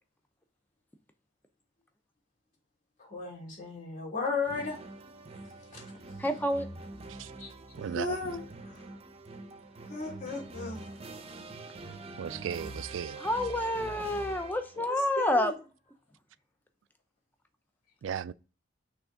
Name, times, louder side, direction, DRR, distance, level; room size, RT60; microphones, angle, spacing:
voice 1, 3.0-4.8 5.7-5.8 7.4-7.5 7.9-8.8 9.8-10.9 14.7-15.5, left 3 dB, 45° left, 3.1 m, -35 dB
sound 1, 4.5-14.9, right 2 dB, 35° right, 0.7 m, -45 dB
voice 2, 6.2-6.7 13.2-15.5, left 1 dB, 10° left, 0.7 m, -28 dB
voice 3, 7.8-8.2 12.2-13.2 18.0-18.3, right 8 dB, 90° right, 0.3 m, -36 dB
6.2 x 3.5 x 5.1 m
head